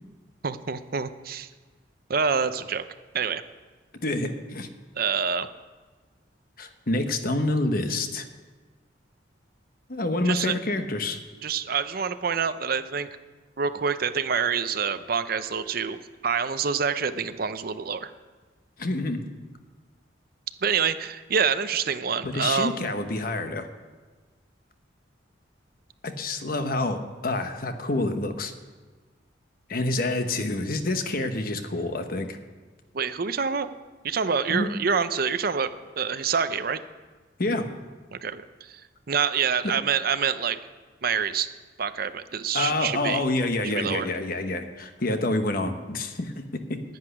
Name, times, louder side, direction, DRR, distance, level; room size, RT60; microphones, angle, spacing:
voice 1, 0.4-1.5 2.1-2.8 3.1-3.4 5.0-5.5 10.2-10.5 11.4-13.1 13.6-18.1 20.6-22.8 32.9-33.7 34.0-35.7 36.0-36.8 38.1-38.8 39.1-40.6 41.0-41.5 41.8-43.2 43.6-44.1, right 6 dB, 50° right, 12 dB, 0.6 m, -26 dB
voice 2, 4.0-4.7 6.6-8.3 9.9-11.2 18.8-19.2 22.2-23.7 26.0-28.5 29.7-32.4 34.5-34.7 37.4-37.7 42.5-46.8, left 2 dB, 50° left, 7 dB, 1.1 m, -27 dB
10.5 x 8.2 x 9.9 m, 1.3 s
head